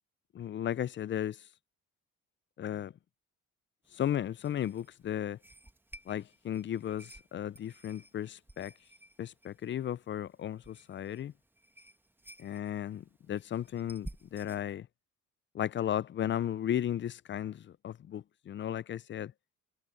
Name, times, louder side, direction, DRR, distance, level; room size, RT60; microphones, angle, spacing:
voice 1, 0.3-1.4 2.6-2.9 3.9-5.4 6.1-8.7 9.2-11.3 12.4-14.9 15.5-19.3, left 10 dB, 40° left, 0.4 m, -35 dB
sound 1, 3.8-14.6, right 1 dB, 5° right, 1.1 m, -54 dB
cardioid pair, 90°, 30 cm